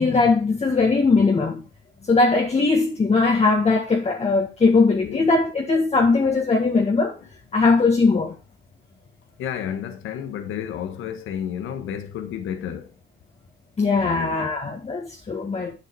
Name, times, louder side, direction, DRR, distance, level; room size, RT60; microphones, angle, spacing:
voice 1, 0.0-1.6 2.1-7.1 7.5-8.4 13.8-15.7, left 3 dB, 30° left, 1.7 m, -20 dB
voice 2, 5.0-5.3 9.4-12.9 14.0-14.5, left 9 dB, 85° left, 1.5 m, -31 dB
8.2 x 6.9 x 4.7 m
cardioid pair, 90°, 20 cm